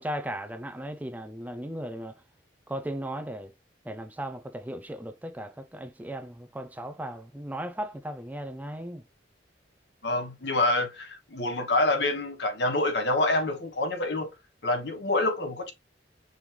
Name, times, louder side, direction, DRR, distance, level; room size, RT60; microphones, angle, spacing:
voice 1, 0.0-2.2 2.7-3.5 3.8-9.0, right 1 dB, 10° right, 0.4 m, -36 dB
voice 2, 10.0-14.3 14.6-15.7, left 2 dB, 65° left, 1.2 m, -27 dB
5.4 x 3.2 x 3.0 m
head